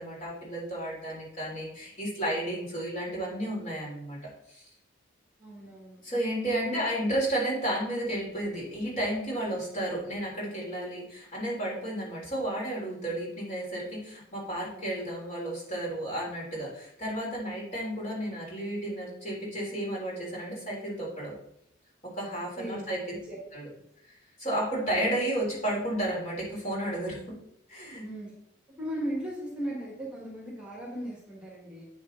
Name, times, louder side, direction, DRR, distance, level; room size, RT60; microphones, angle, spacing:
voice 1, 0.0-4.2 4.5-4.7 6.0-21.3 22.2-23.0 23.5-23.7 24.4-27.2 27.7-28.0, right 1 dB, 35° left, -4 dB, 3.5 m, -32 dB
voice 2, 5.4-6.0 6.6-6.8 22.6-23.4 28.0-28.3 28.8-31.9, equal, 5° right, -5 dB, 1.9 m, -37 dB
8.9 x 6.7 x 3.9 m, 0.76 s
head